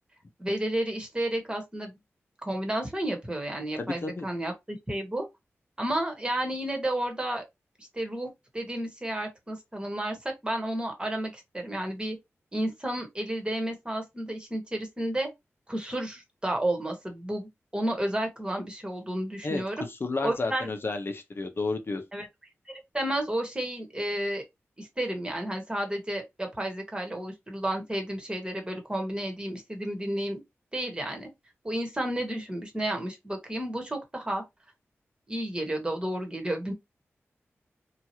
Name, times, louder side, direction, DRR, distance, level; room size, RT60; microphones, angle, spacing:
voice 1, 0.4-1.9 2.4-5.3 5.8-7.4 7.8-8.3 8.5-12.2 12.5-15.3 15.7-19.8 20.2-20.7 22.1-22.3 22.7-24.4 24.8-30.4 30.7-31.3 31.6-34.4 35.3-36.7, right 1 dB, 20° right, 1.2 m, -31 dB
voice 2, 3.8-4.3 19.4-19.6 20.0-22.0, left 3 dB, 50° left, 0.7 m, -31 dB
2.9 x 2.4 x 2.9 m
cardioid pair, 55°, 5 cm